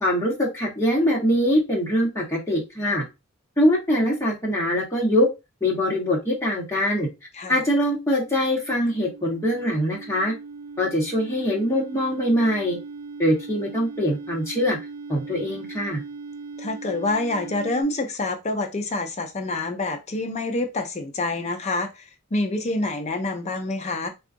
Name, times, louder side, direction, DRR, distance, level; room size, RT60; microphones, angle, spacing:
voice 1, 0.0-3.0 3.6-5.3 5.6-7.1 7.5-10.3 10.8-12.8 13.2-14.8 15.1-16.0, equal, 15° left, 1.1 m, -23 dB
sound 1, 7.6-17.8, right 4 dB, 70° right, 1.3 m, -39 dB
voice 2, 16.6-21.9 22.3-24.1, left 2 dB, 30° left, 0.5 m, -27 dB
3.7 x 2.3 x 2.5 m
head